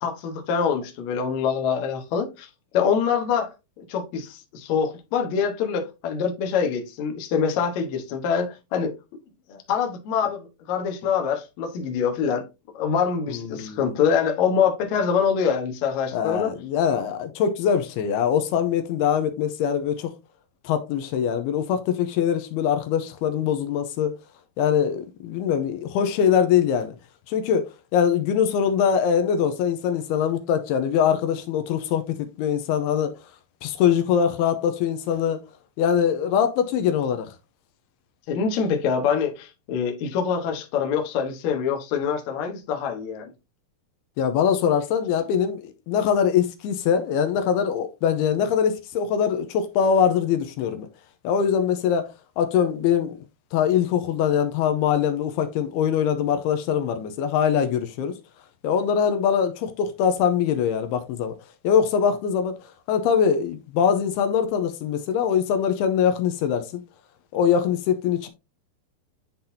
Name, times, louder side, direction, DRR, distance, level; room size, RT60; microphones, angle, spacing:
voice 1, 0.0-2.5 2.7-8.9 9.5-12.5 12.7-16.5 38.3-43.3, left 7 dB, 60° left, 2.0 m, -25 dB
voice 2, 13.3-14.0 16.1-20.1 20.6-24.1 24.6-27.0 27.3-33.1 33.6-35.4 35.8-37.3 44.2-50.9 51.2-52.1 52.4-53.2 53.5-58.1 58.6-61.3 61.6-62.6 62.9-66.8 67.3-68.3, left 8 dB, 85° left, 2.6 m, -23 dB
10.5 x 3.9 x 2.7 m
omnidirectional pair, 4.6 m